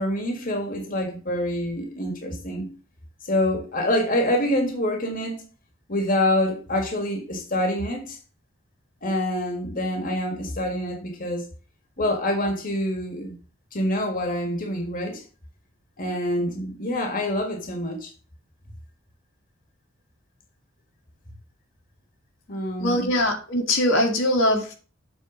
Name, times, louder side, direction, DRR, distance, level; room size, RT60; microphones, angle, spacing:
voice 1, 0.0-2.7 3.2-5.4 5.9-8.2 9.0-11.5 12.0-13.3 13.7-15.2 16.0-18.1 22.5-23.1, left 1 dB, 45° left, 1.7 m, -26 dB
voice 2, 22.8-24.7, left 1 dB, 75° left, 2.1 m, -22 dB
7.6 x 4.4 x 6.3 m
head